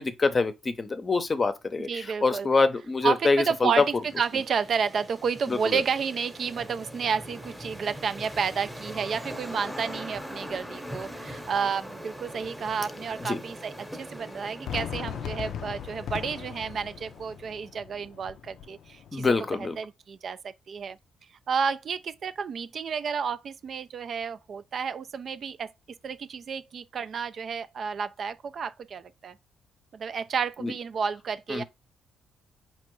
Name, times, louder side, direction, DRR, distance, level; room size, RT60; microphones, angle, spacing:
voice 1, 0.0-3.7 5.5-5.8 13.2-13.4 19.1-19.8 30.6-30.7 31.5-31.6, left 3 dB, 35° left, 0.6 m, -25 dB
voice 2, 1.9-2.5 3.0-21.0 21.5-25.7 26.0-29.3 29.9-31.6, right 6 dB, 55° right, 0.3 m, -31 dB
sound 1, 3.2-17.6, equal, ahead, 0.9 m, -42 dB
Fireworks, 14.7-19.7, left 9 dB, 70° left, 0.3 m, -39 dB
4.3 x 2.9 x 3.0 m
cardioid pair, 75°, 0 cm